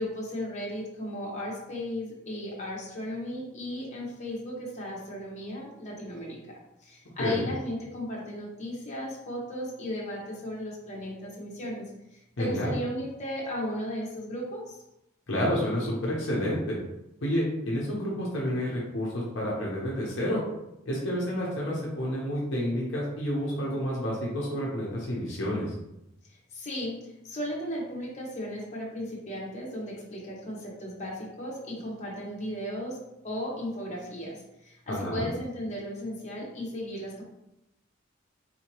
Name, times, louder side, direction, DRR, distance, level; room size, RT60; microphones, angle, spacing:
voice 1, 0.0-6.4 6.8-14.8 26.3-37.2, equal, 35° left, -4 dB, 1.1 m, -35 dB
voice 2, 7.2-7.5 12.4-12.7 15.3-16.8 17.2-20.4 20.9-25.7 34.9-35.3, equal, 65° left, -5 dB, 0.8 m, -29 dB
4.1 x 2.8 x 3.0 m, 0.87 s
head